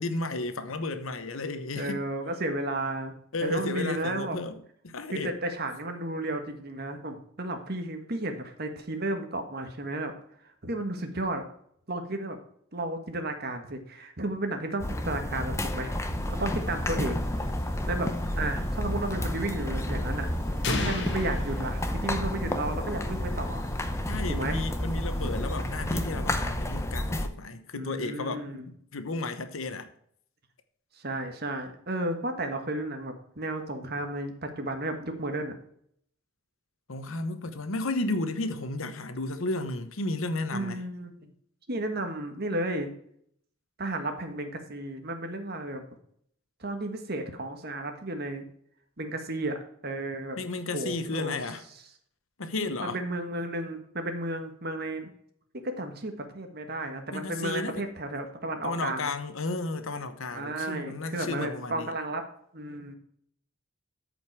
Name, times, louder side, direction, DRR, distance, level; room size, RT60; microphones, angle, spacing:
voice 1, 0.0-2.0 3.3-4.6 4.8-5.3 24.1-29.9 36.9-40.8 50.4-51.6 52.4-53.0 57.1-57.9 58.6-61.9, left 2 dB, 80° left, 1.1 m, -33 dB
voice 2, 1.7-3.1 3.4-4.4 5.1-10.1 10.6-11.4 11.9-12.4 12.7-15.9 16.4-17.2 17.9-20.3 20.7-23.7 24.3-24.6 27.7-28.7 31.0-35.5 40.5-41.2 41.7-42.9 43.8-45.8 46.6-48.4 49.0-49.6 49.8-50.4 50.7-51.4 52.8-55.1 55.6-59.1 60.3-62.2 62.5-62.9, right 1 dB, 50° right, 1.5 m, -33 dB
sound 1, 14.8-27.3, left 1 dB, 15° left, 0.7 m, -30 dB
sound 2, 16.1-26.1, right 1 dB, 25° right, 1.9 m, -47 dB
sound 3, 20.6-22.6, left 2 dB, 55° left, 1.4 m, -33 dB
13.5 x 5.3 x 4.7 m
head